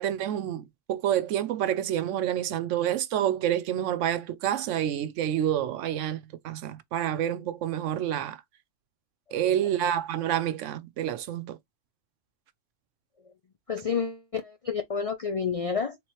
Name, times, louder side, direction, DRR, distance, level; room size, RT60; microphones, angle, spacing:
voice 1, 0.0-8.4 9.3-11.6, right 11 dB, 80° right, 0.9 m, -28 dB
voice 2, 13.7-16.0, left 6 dB, 60° left, 0.3 m, -29 dB
3.6 x 3.0 x 2.9 m
omnidirectional pair, 1.3 m